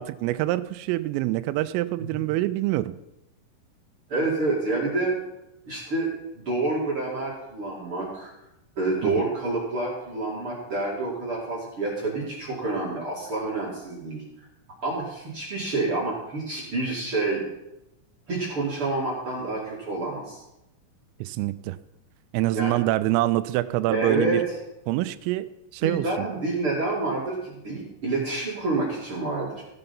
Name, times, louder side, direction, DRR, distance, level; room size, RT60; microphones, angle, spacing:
voice 1, 0.0-2.9 9.0-9.1 21.2-21.8 22.3-24.4 24.9-25.5 25.7-26.1, right 16 dB, 85° right, 14 dB, 3.2 m, -25 dB
voice 2, 4.1-5.1 5.7-6.1 6.3-8.3 8.8-14.2 14.8-17.4 18.3-20.4 22.5-22.8 23.9-24.4 25.8-29.6, right 2 dB, 40° right, -5 dB, 2.1 m, -28 dB
15.5 x 7.0 x 5.4 m, 0.90 s
omnidirectional pair, 5.8 m